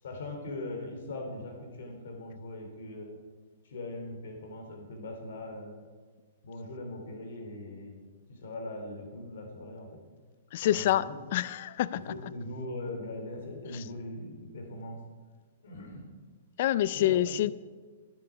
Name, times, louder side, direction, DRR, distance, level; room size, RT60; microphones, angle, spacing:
voice 1, 0.0-3.2 3.6-5.8 6.4-10.0 10.6-11.1 11.9-15.0 15.6-16.1 16.9-17.3, left 1 dB, 70° left, 3 dB, 2.9 m, -40 dB
voice 2, 10.5-11.1 11.3-12.0 13.7-13.8 16.6-17.5, left 13 dB, 50° left, 18 dB, 0.3 m, -26 dB
12.5 x 9.4 x 4.7 m, 1.4 s
hypercardioid pair, 155°, 0 cm